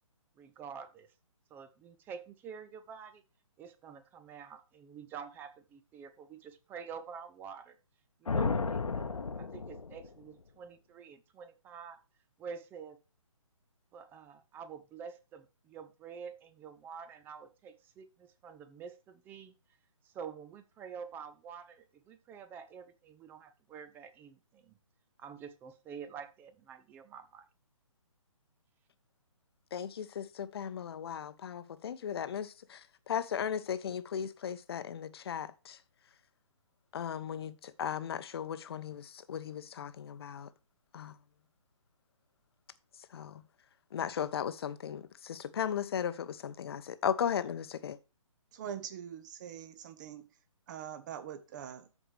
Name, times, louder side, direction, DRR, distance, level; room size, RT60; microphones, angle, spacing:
voice 1, 0.4-1.1 1.5-3.2 3.6-7.8 8.2-12.0 12.4-13.0 13.9-19.5 20.0-24.8 25.2-27.4, right 6 dB, 10° right, 0.6 m, -48 dB
sound 1, 8.3-10.2, left 4 dB, 80° left, 1.0 m, -33 dB
voice 2, 29.7-32.8 33.1-35.8 36.9-40.5 40.9-41.2 43.1-43.4 43.9-48.0, left 8 dB, 50° left, 0.8 m, -36 dB
voice 3, 48.5-50.3 50.7-51.9, right 9 dB, 35° right, 1.2 m, -43 dB
13.5 x 4.8 x 3.3 m
figure-of-eight pair, 140°, 17 cm